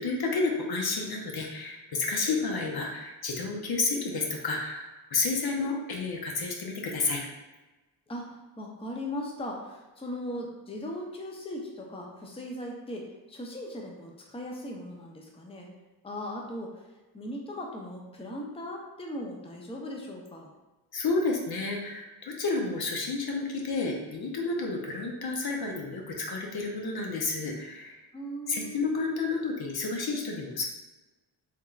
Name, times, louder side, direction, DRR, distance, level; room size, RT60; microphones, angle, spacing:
voice 1, 0.0-7.3 20.9-28.0 28.5-30.7, left 3 dB, 50° left, 0 dB, 0.7 m, -30 dB
voice 2, 8.1-15.7 16.0-16.8 17.1-20.5 28.1-28.8, left 1 dB, 10° left, 0 dB, 0.6 m, -38 dB
3.4 x 3.0 x 2.4 m, 1.1 s
supercardioid pair, 55°, 47 cm